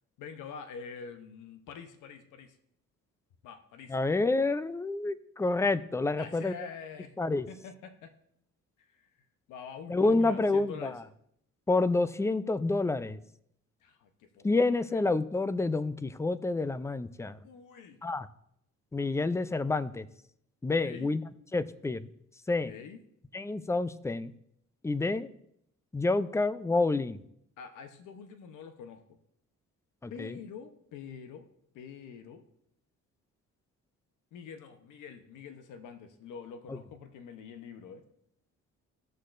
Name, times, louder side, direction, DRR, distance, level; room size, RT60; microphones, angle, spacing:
voice 1, 0.2-2.6 3.4-4.0 6.2-7.1 7.5-8.1 8.8-9.1 9.5-11.0 13.8-14.6 14.9-15.0 17.4-18.0 20.8-21.1 22.7-23.0 27.6-29.2 30.1-31.4 31.7-32.4 34.3-38.0, left 6 dB, 85° left, 8 dB, 0.9 m, -45 dB
voice 2, 3.9-6.5 7.2-7.5 9.9-11.0 11.7-13.2 14.4-17.4 18.0-18.3 18.9-20.1 20.6-21.2 21.5-22.1 22.5-22.7 23.3-24.3 24.8-25.3 25.9-27.2 30.0-30.4, left 3 dB, 10° left, 15 dB, 0.4 m, -28 dB
16.0 x 6.5 x 2.6 m, 0.73 s
cardioid pair, 90°, 30 cm